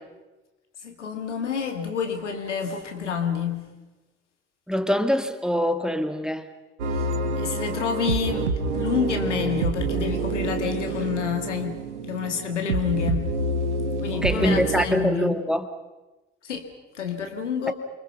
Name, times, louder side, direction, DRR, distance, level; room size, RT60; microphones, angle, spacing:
voice 1, 0.8-3.7 6.9-7.1 7.4-13.3 14.0-15.4 16.4-16.7 16.9-17.7, left 7 dB, 80° left, 2.2 m, -28 dB
voice 2, 4.7-6.5 14.1-15.7 17.7-17.8, equal, ahead, 2.0 m, -24 dB
sound 1, 6.8-14.8, right 3 dB, 75° right, 1.8 m, -27 dB
28.5 x 24.5 x 5.9 m
figure-of-eight pair, 55°, 35 cm